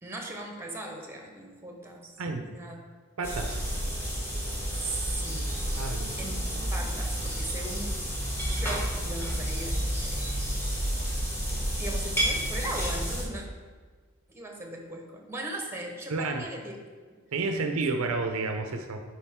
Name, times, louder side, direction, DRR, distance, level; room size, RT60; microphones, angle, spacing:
voice 1, 0.0-2.1 2.4-2.8 4.7-5.5 6.2-8.0 8.4-10.5 11.8-13.5 14.3-16.7, right 1 dB, 10° right, 2 dB, 1.1 m, -38 dB
voice 2, 2.2-2.5 3.2-3.7 5.8-6.2 16.1-16.5 17.3-19.0, right 3 dB, 70° right, 6 dB, 0.6 m, -30 dB
sound 1, 3.2-13.2, equal, 10° left, 1.7 m, -30 dB
9.6 x 5.0 x 3.6 m, 1.5 s
head